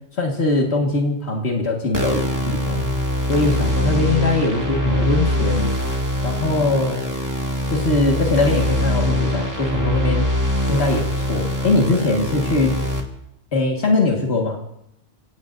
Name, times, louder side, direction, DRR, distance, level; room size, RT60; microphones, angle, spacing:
voice 1, 0.1-2.9 3.2-5.7 6.2-7.0 7.7-10.3 10.7-12.8 13.5-14.6, left 2 dB, 85° left, 1 dB, 2.0 m, -21 dB
sound 1, 1.9-13.0, left 1 dB, 15° right, 2.1 m, -23 dB
30.0 x 17.5 x 2.6 m, 0.78 s
omnidirectional pair, 1.1 m